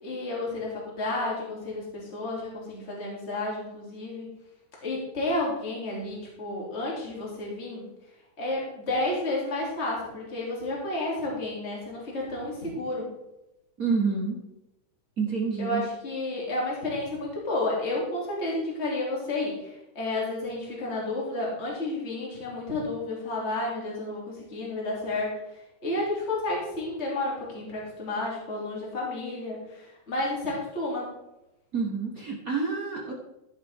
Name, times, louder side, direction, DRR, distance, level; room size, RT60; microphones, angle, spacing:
voice 1, 0.0-4.3 4.8-7.8 8.4-13.1 15.6-25.3 25.8-31.1, left 2 dB, 20° left, -4 dB, 2.9 m, -31 dB
voice 2, 13.8-14.4 15.2-15.8 31.7-33.1, right 5 dB, 70° right, 0 dB, 0.8 m, -28 dB
15.0 x 7.2 x 3.6 m, 0.91 s
omnidirectional pair, 3.5 m